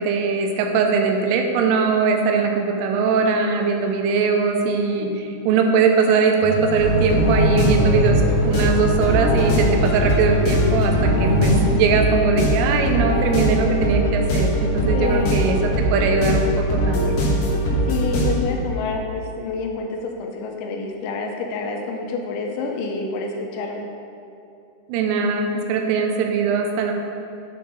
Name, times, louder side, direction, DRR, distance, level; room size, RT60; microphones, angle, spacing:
voice 1, 0.0-17.1 24.9-26.9, right 5 dB, 80° right, 4 dB, 3.2 m, -21 dB
sound 1, 6.4-11.5, left 1 dB, 60° right, 2.0 m, -23 dB
sound 2, 6.8-18.4, equal, 65° left, 3.2 m, -21 dB
voice 2, 14.9-15.4 17.9-23.8, left 3 dB, 85° left, 2 dB, 2.9 m, -28 dB
10.0 x 6.8 x 3.9 m, 2.6 s
omnidirectional pair, 5.8 m